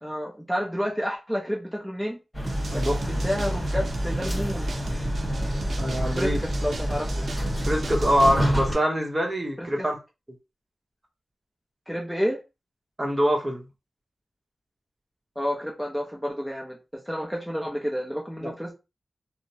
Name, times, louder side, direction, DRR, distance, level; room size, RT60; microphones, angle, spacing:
voice 1, 0.0-2.2 2.7-4.7 6.2-7.2 9.6-9.9 11.9-12.4 15.4-18.7, equal, ahead, 0.6 m, -30 dB
sound 1, 2.3-8.7, equal, 20° left, 1.3 m, -27 dB
sound 2, 2.5-8.4, right 3 dB, 70° right, 0.5 m, -38 dB
voice 2, 2.7-3.2 5.8-6.4 7.7-10.0 13.0-13.6 18.4-18.5, equal, 25° right, 0.9 m, -24 dB
2.8 x 2.0 x 2.7 m
cardioid pair, 60°, 0 cm